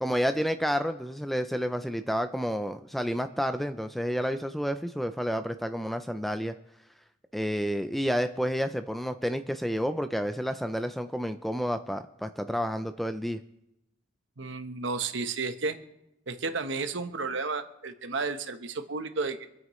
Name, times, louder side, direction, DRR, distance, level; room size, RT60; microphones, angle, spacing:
voice 1, 0.0-6.5 7.3-13.4, equal, ahead, 9 dB, 0.4 m, -30 dB
voice 2, 14.4-15.8 16.3-19.5, right 4 dB, 70° right, 8 dB, 1.0 m, -32 dB
26.5 x 9.0 x 3.1 m, 0.86 s
head